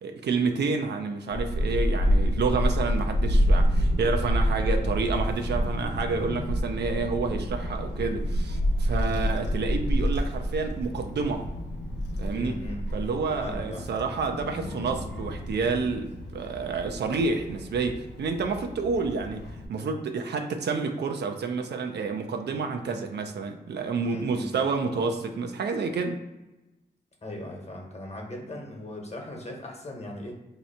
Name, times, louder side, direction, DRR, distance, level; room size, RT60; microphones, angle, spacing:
voice 1, 0.0-11.5 12.2-12.6 12.9-26.2, right 4 dB, 75° right, 5 dB, 0.5 m, -29 dB
Child speech kid speaking / Wind, 1.3-19.7, equal, 85° left, 0.6 m, -28 dB
voice 2, 12.3-12.8 13.3-13.8 24.0-24.6 27.2-30.3, left 1 dB, 40° left, 1 dB, 1.1 m, -38 dB
2.8 x 2.4 x 4.2 m, 1.0 s
cardioid pair, 45°, 18 cm